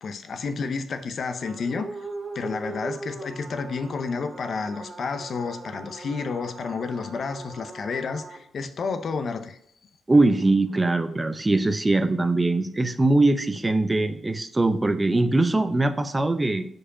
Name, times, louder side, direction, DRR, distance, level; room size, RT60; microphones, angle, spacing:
voice 1, 0.0-1.9 2.3-9.6, left 5 dB, 60° left, 9 dB, 0.6 m, -30 dB
sound 1, 1.4-8.4 10.1-11.2, right 3 dB, 40° right, 1.0 m, -40 dB
voice 2, 10.1-16.7, right 2 dB, 20° right, 9 dB, 0.6 m, -22 dB
5.0 x 4.7 x 4.9 m, 0.69 s
cardioid pair, 75°, 0 cm